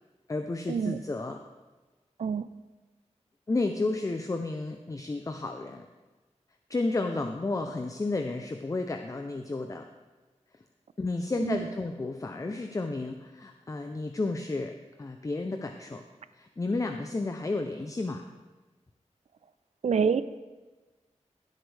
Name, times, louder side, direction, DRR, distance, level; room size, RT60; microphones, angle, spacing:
voice 1, 0.3-1.4 3.5-5.9 6.7-9.9 11.0-14.7 15.0-16.0 16.3-18.2, left 2 dB, 30° left, 5 dB, 0.6 m, -32 dB
voice 2, 19.8-20.2, right 6 dB, 70° right, 13 dB, 0.5 m, -26 dB
16.0 x 8.0 x 3.4 m, 1.2 s
wide cardioid pair, 105°, 12 cm